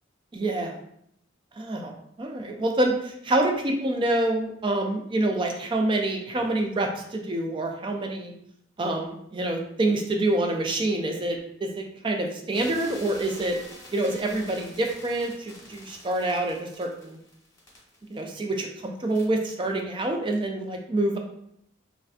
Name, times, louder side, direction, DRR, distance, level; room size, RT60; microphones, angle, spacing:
voice 1, 0.3-0.8 1.5-8.3 8.8-13.6 13.9-17.2 18.1-21.2, right 2 dB, 25° right, 2 dB, 0.3 m, -27 dB
sound 1, 12.5-18.8 19.1-19.3, left 1 dB, 15° left, 1.0 m, -46 dB
3.2 x 2.5 x 2.4 m, 0.73 s
head